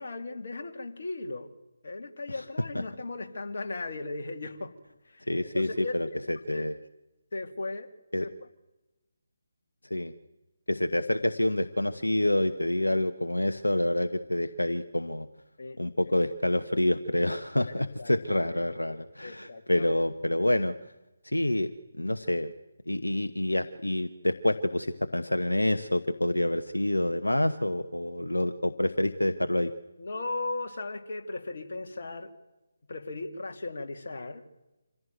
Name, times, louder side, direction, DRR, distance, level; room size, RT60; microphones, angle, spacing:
voice 1, 0.0-1.5 1.8-4.8 5.0-6.0 6.5-6.7 7.3-7.9 8.2-8.3 15.6-15.8 17.6-20.0 30.0-32.3 32.9-34.4, left 2 dB, 55° left, 4 dB, 2.4 m, -37 dB
voice 2, 5.3-6.7 8.1-8.3 9.9-10.1 10.7-15.3 15.8-20.7 21.2-22.5 22.9-29.7, left 1 dB, 85° left, 10 dB, 1.0 m, -27 dB
26.0 x 16.0 x 9.4 m, 1.0 s
figure-of-eight pair, 150°, 0 cm